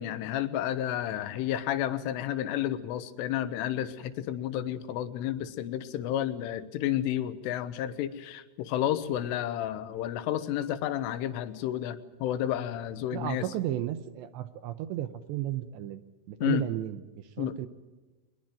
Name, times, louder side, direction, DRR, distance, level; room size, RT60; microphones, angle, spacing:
voice 1, 0.0-13.5 16.4-16.6 17.4-17.5, left 11 dB, 85° left, 12 dB, 3.7 m, -31 dB
voice 2, 13.1-16.0 16.3-17.7, right 13 dB, 75° right, 12 dB, 2.8 m, -34 dB
22.5 x 21.5 x 7.7 m, 1.2 s
omnidirectional pair, 5.6 m